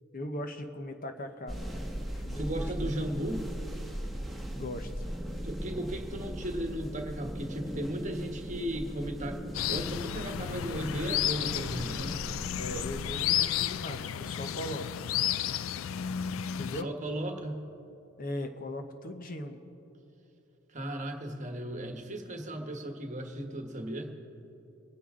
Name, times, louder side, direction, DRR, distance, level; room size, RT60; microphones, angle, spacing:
voice 1, 0.1-1.8 2.1-2.9 4.5-5.0 12.6-14.9 16.6-16.9 18.2-19.6, left 1 dB, 40° left, 6 dB, 0.9 m, -39 dB
sound 1, 1.5-13.2, equal, ahead, 1.3 m, -39 dB
voice 2, 2.4-3.4 5.4-12.2 12.7-12.9 16.8-17.7 20.7-24.1, right 1 dB, 35° right, 4 dB, 1.3 m, -36 dB
sound 2, 9.5-16.8, left 10 dB, 70° left, 0.4 m, -32 dB
25.5 x 9.8 x 3.8 m, 2.9 s
head